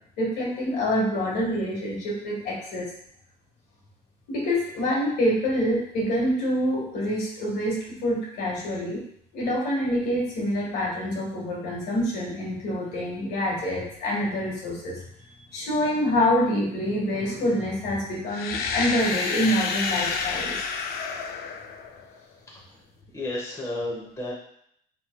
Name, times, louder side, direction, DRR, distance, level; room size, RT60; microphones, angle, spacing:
voice 1, 0.2-2.8 4.3-9.0 9.3-15.0 15.5-20.6, equal, 80° left, -4 dB, 1.5 m, -26 dB
sound 1, 18.3-22.2, left 5 dB, 65° left, 0.4 m, -29 dB
voice 2, 23.1-24.3, left 2 dB, 15° left, -4 dB, 1.0 m, -32 dB
4.5 x 3.0 x 2.2 m, 0.68 s
cardioid pair, 110°, 17 cm